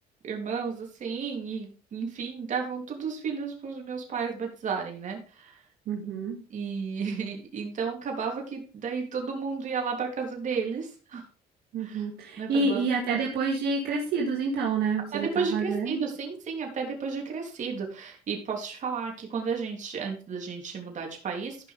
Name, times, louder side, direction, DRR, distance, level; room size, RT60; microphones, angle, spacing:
voice 1, 0.2-5.6 6.5-11.2 11.8-12.1 12.4-12.8 13.1-13.2 15.1-21.7, right 5 dB, 45° right, 1 dB, 3.2 m, -33 dB
voice 2, 5.9-6.4 11.7-16.0, right 4 dB, 70° right, -1 dB, 2.2 m, -28 dB
15.0 x 5.7 x 3.5 m, 0.37 s
cardioid pair, 110°, 17 cm